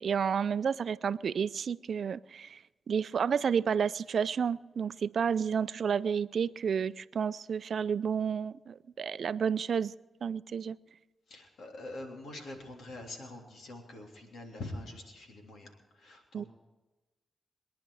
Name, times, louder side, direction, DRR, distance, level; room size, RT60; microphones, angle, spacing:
voice 1, 0.0-9.9 10.2-10.8 16.3-16.4, right 7 dB, 70° right, 17 dB, 0.4 m, -31 dB
voice 2, 11.3-16.5, left 2 dB, 80° left, 2 dB, 3.2 m, -44 dB
23.0 x 10.5 x 4.8 m, 1.1 s
supercardioid pair, 45°, 0 cm